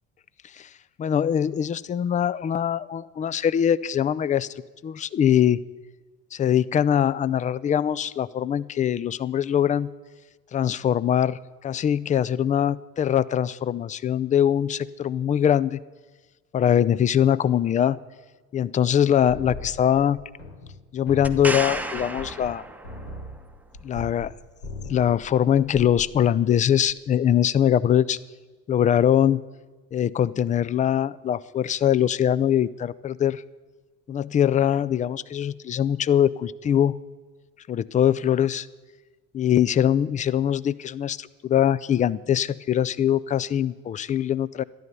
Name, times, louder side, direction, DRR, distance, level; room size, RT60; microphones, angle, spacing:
voice 1, 1.0-4.5 4.8-5.6 6.3-9.9 10.5-15.8 16.5-18.0 18.5-20.2 20.9-22.6 23.8-24.3 24.9-28.2 28.7-29.4 29.9-33.4 34.1-36.9 37.7-38.6 39.3-44.6, left 9 dB, 20° left, 20 dB, 0.3 m, -22 dB
sound 1, 19.3-20.8 21.1-24.3 24.6-25.2 25.5-26.1, left 2 dB, 75° left, 3.5 m, -39 dB
sound 2, 21.2-23.2 26.9-27.0, right 2 dB, 5° right, 0.9 m, -31 dB
13.0 x 11.0 x 6.9 m, 1.3 s
hypercardioid pair, 65°, 41 cm